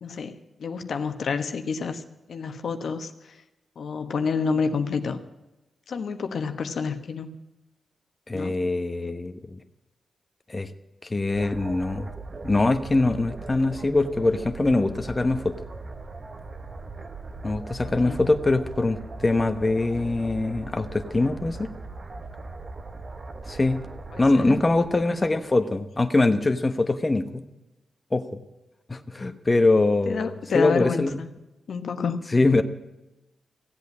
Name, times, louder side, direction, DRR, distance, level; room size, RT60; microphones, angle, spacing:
voice 1, 0.0-2.0 2.3-3.1 3.8-5.2 5.9-7.4 8.3-8.5 17.8-18.2 24.1-24.6 30.1-31.3 31.7-32.2, left 5 dB, 75° left, 8 dB, 1.2 m, -29 dB
voice 2, 8.3-9.6 10.5-10.7 11.1-12.1 12.4-15.6 17.4-21.7 23.5-23.8 24.2-27.4 28.1-28.4 28.9-31.2 32.3-32.6, left 2 dB, 25° left, 8 dB, 1.1 m, -23 dB
sound 1, 11.3-25.6, right 3 dB, 40° right, 1.2 m, -39 dB
15.5 x 8.2 x 9.6 m, 1.0 s
cardioid pair, 80°, 0 cm